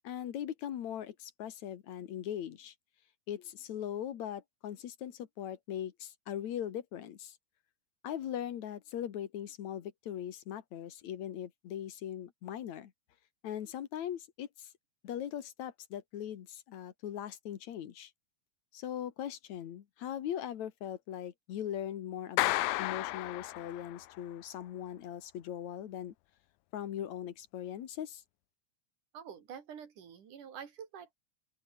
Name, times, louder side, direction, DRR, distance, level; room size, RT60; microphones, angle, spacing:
voice 1, 0.0-2.7 3.3-7.4 8.0-12.9 13.4-14.7 15.0-18.1 18.7-26.1 26.7-28.2, left 10 dB, 70° left, 2.8 m, -40 dB
Clapping, 22.4-24.1, left 19 dB, 90° left, 2.1 m, -32 dB
voice 2, 29.1-31.2, right 8 dB, 85° right, 4.2 m, -47 dB
open air
omnidirectional pair, 3.5 m